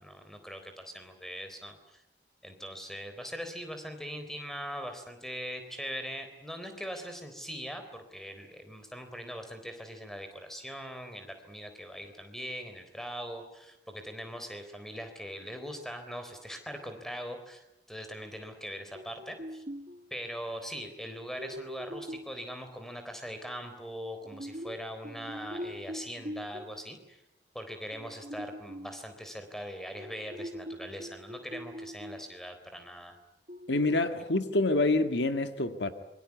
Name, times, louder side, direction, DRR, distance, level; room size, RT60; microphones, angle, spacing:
voice 1, 0.0-2.0 2.4-19.6 20.1-27.2 27.5-33.2, equal, ahead, 3.8 m, -41 dB
sound 1, 18.9-20.1 21.4-22.4 24.2-26.8 27.9-29.0 30.0-32.3 32.6-32.7 33.5-34.0, equal, 40° right, 1.7 m, -42 dB
voice 2, 33.7-35.9, left 2 dB, 75° left, 1.8 m, -27 dB
26.5 x 24.0 x 8.5 m
head